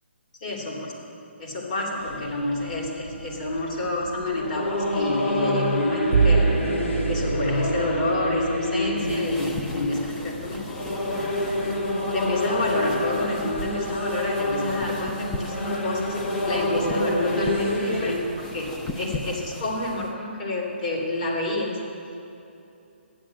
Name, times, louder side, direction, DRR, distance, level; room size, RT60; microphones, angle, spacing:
voice 1, 0.4-0.9 1.4-6.5 7.1-10.6 12.1-16.2 16.5-21.8, left 2 dB, 40° left, -2 dB, 2.8 m, -29 dB
sound 1, 2.0-18.2, left 1 dB, 85° left, 2.0 m, -28 dB
Bowed string instrument, 6.1-9.2, right 5 dB, 50° right, 0.5 m, -25 dB
sound 2, 9.0-20.1, left 2 dB, 5° left, 0.5 m, -38 dB
12.5 x 10.0 x 7.6 m, 2.7 s
hypercardioid pair, 160°, 7 cm